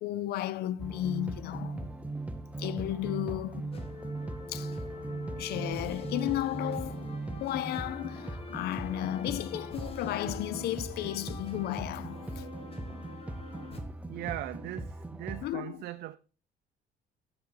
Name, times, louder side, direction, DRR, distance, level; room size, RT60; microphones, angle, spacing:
voice 1, 0.0-1.9 2.6-3.7 4.5-4.7 5.4-12.4 15.4-15.8, left 13 dB, 70° left, 0.5 m, -34 dB
sound 1, 0.8-15.5, right 2 dB, 10° right, 0.7 m, -39 dB
sound 2, 3.7-13.8, left 2 dB, 35° left, 1.6 m, -45 dB
voice 2, 14.1-16.2, right 14 dB, 70° right, 0.5 m, -39 dB
8.7 x 6.0 x 3.9 m
cardioid pair, 110°, 17 cm